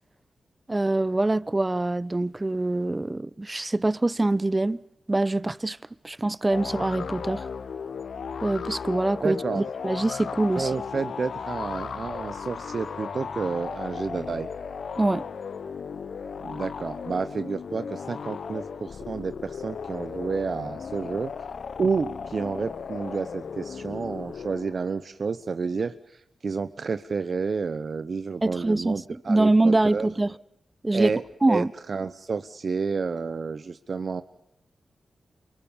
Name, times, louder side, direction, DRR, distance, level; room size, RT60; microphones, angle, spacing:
voice 1, 0.7-4.8 5.1-5.8 6.0-7.4 8.4-10.7 15.0-15.2 28.4-29.0 29.3-30.3 30.8-31.1 31.4-31.7, right 2 dB, 25° right, 0.8 m, -24 dB
sound 1, 6.5-24.9, left 6 dB, 75° left, 0.9 m, -36 dB
voice 2, 9.2-9.7 10.6-14.5 16.4-21.3 21.8-30.1 30.9-31.2 31.5-34.2, right 5 dB, 60° right, 0.9 m, -30 dB
28.0 x 23.0 x 5.3 m
supercardioid pair, 40°, 0 cm